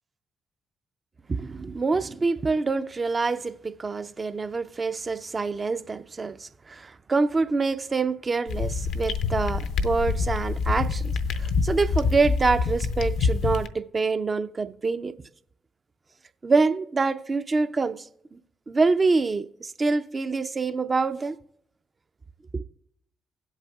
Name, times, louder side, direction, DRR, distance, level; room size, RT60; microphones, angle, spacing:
voice 1, 1.3-11.1 11.4-15.1 16.4-18.1 18.3-18.4 18.7-21.4 22.5-22.6, right 4 dB, 35° right, 0.6 m, -26 dB
sound 1, 8.5-13.7, left 4 dB, 65° left, 0.6 m, -26 dB
17.0 x 8.1 x 2.4 m
hypercardioid pair, 40°, 0 cm